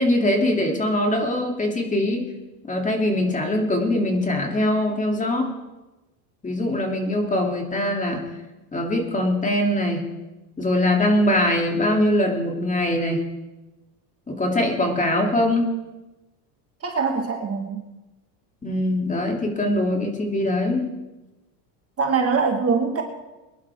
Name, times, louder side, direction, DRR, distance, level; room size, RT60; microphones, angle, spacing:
voice 1, 0.0-2.3 2.7-5.5 6.4-8.2 8.7-10.0 10.6-13.2 14.3-15.7 18.6-20.9, left 1 dB, 15° left, 2 dB, 2.7 m, -22 dB
voice 2, 16.8-17.9 22.0-23.0, right 5 dB, 30° right, 3 dB, 1.5 m, -23 dB
23.0 x 11.0 x 3.5 m, 1.1 s
supercardioid pair, 110°, 49 cm